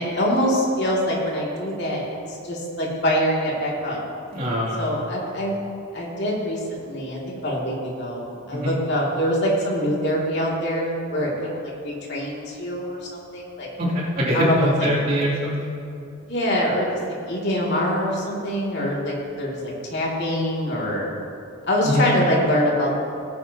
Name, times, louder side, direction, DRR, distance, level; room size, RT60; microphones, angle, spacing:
voice 1, 0.0-4.0 4.8-5.6 5.9-13.7 14.3-14.5 16.3-16.9 17.3-21.1 21.7-23.0, equal, 50° left, -4 dB, 2.5 m, -24 dB
voice 2, 4.3-4.8 8.5-8.7 13.8-15.7 21.8-22.1, equal, 40° right, -7 dB, 2.7 m, -23 dB
18.0 x 9.5 x 2.9 m, 2.6 s
head